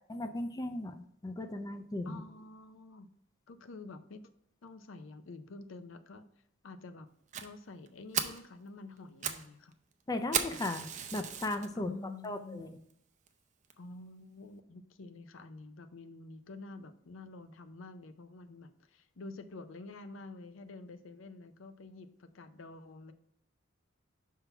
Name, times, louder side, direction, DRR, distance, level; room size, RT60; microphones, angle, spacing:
voice 1, 0.1-2.2 10.1-11.9 12.2-12.8, left 2 dB, 20° left, 7 dB, 0.4 m, -37 dB
voice 2, 2.0-3.1 3.5-4.3 4.6-6.3 6.6-7.1 7.4-9.7 11.7-12.6 13.8-23.1, left 3 dB, 80° left, 10 dB, 0.6 m, -48 dB
Fire, 7.3-7.5 7.9-8.0 8.1-8.4 9.0-9.5 9.7-9.8 10.3-11.7 12.2-12.3 12.9-13.0 13.3-13.4 13.7-13.8, right 8 dB, 40° right, 0.5 m, -35 dB
5.6 x 3.7 x 5.8 m, 0.75 s
head